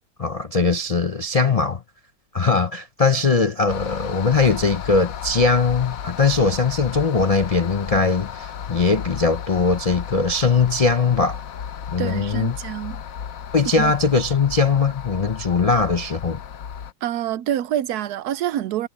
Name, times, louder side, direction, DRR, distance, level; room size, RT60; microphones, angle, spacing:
voice 1, 0.2-1.8 2.3-11.4 11.9-12.6 13.5-16.4, left 4 dB, 75° left, 0.3 m, -20 dB
sound 1, 3.7-16.9, left 8 dB, 60° left, 1.2 m, -34 dB
voice 2, 12.0-13.0 13.8-13.9 17.0-18.9, right 11 dB, 70° right, 1.1 m, -26 dB
omnidirectional pair, 1.8 m